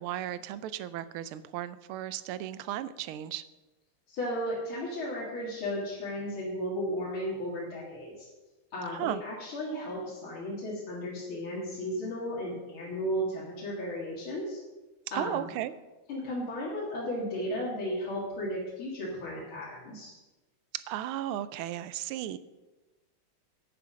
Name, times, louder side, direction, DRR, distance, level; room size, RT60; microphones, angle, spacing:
voice 1, 0.0-3.4 8.9-9.2 15.1-15.7 20.7-22.4, right 12 dB, 80° right, 15 dB, 1.5 m, -35 dB
voice 2, 4.1-8.3 8.7-14.6 15.1-15.5 16.1-20.1, equal, 70° left, -6 dB, 3.0 m, -34 dB
10.0 x 9.7 x 5.1 m, 1.1 s
omnidirectional pair, 2.4 m